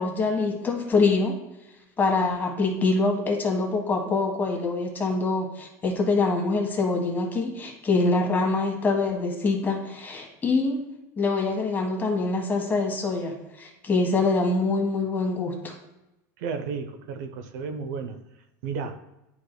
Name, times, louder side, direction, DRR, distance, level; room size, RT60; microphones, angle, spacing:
voice 1, 0.0-1.4 2.0-10.8 11.2-15.7, left 3 dB, 20° left, 1 dB, 1.5 m, -25 dB
voice 2, 16.4-18.2 18.6-19.0, right 5 dB, 75° right, 8 dB, 0.8 m, -33 dB
11.0 x 4.9 x 2.3 m, 0.94 s
supercardioid pair, 130°, 9 cm